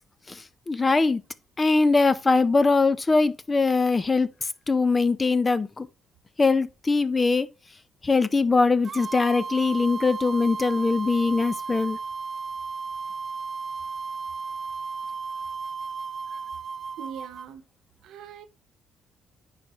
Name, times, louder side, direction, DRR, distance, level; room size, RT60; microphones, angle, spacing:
voice 1, 0.7-1.2 1.6-4.3 4.7-5.9 6.4-7.5 8.0-12.0, left 3 dB, 25° left, 0.6 m, -22 dB
sound 1, 8.8-17.5, right 5 dB, 40° right, 0.5 m, -34 dB
voice 2, 17.0-17.7 18.0-18.5, right 8 dB, 85° right, 1.0 m, -41 dB
9.6 x 4.9 x 3.1 m
cardioid pair, 90°, 0 cm